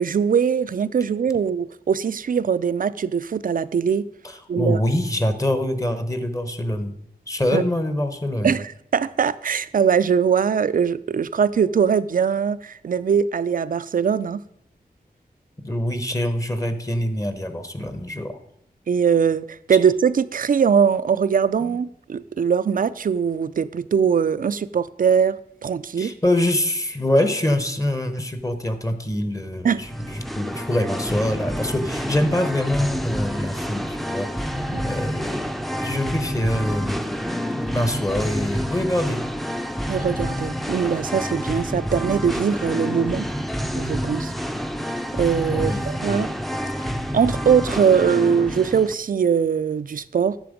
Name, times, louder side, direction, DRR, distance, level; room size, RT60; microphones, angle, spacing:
voice 1, 0.0-4.1 4.5-4.8 7.5-7.6 8.4-14.4 18.9-26.1 29.6-29.8 34.7-34.8 39.9-43.3 43.8-44.3 45.1-46.3 47.1-50.4, right 7 dB, 60° right, 0.4 m, -21 dB
voice 2, 4.2-7.0 7.3-8.5 15.6-18.4 21.6-21.8 26.0-34.3 34.8-35.5 35.8-37.0 37.5-39.2 45.5-46.2, left 1 dB, 20° left, 0.9 m, -24 dB
Singing, 29.8-48.9, equal, ahead, 0.6 m, -28 dB
10.0 x 6.8 x 5.1 m
wide cardioid pair, 90°, 16 cm